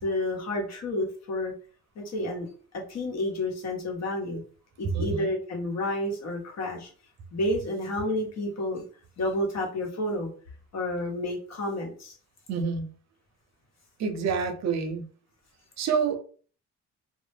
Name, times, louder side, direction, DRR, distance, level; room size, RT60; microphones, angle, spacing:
voice 1, 0.0-1.5 1.9-2.5 2.7-4.4 4.8-6.9 7.3-8.8 9.2-10.3 10.7-12.1, left 1 dB, 60° left, 0 dB, 1.0 m, -30 dB
voice 2, 4.8-5.3 12.5-12.9 14.0-15.1 15.8-16.2, right 5 dB, 65° right, 6 dB, 0.6 m, -27 dB
2.2 x 2.1 x 3.1 m, 0.42 s
cardioid pair, 90°, 30 cm